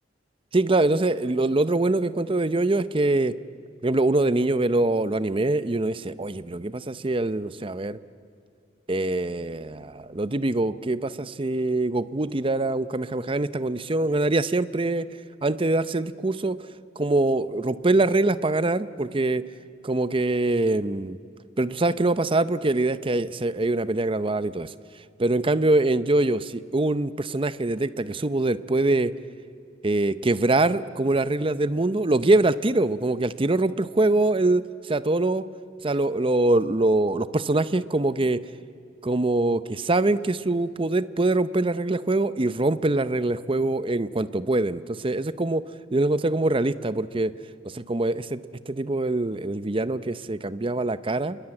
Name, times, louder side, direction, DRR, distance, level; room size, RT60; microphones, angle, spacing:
voice 1, 0.5-3.4 3.8-8.0 8.9-15.1 15.4-16.6 17.0-19.4 19.8-21.2 21.6-24.7 25.2-29.1 29.8-35.4 35.8-38.4 39.0-45.6 45.9-47.3 47.6-51.4, right 2 dB, 30° right, 14 dB, 0.7 m, -24 dB
29.0 x 22.0 x 8.9 m, 2.3 s
head